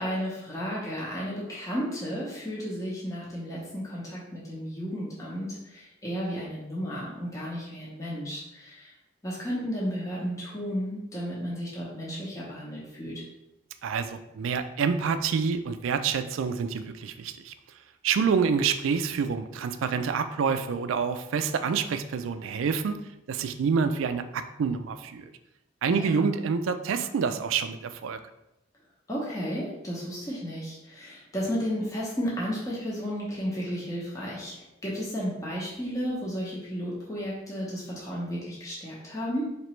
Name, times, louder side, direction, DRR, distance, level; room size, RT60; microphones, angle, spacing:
voice 1, 0.0-8.9 9.2-13.2 25.9-26.2 29.1-39.5, equal, 15° left, -6 dB, 0.7 m, -33 dB
voice 2, 13.8-17.5 18.0-23.0 23.3-25.3 25.8-28.2, right 6 dB, 80° right, 10 dB, 0.3 m, -27 dB
4.4 x 2.9 x 3.1 m, 0.90 s
head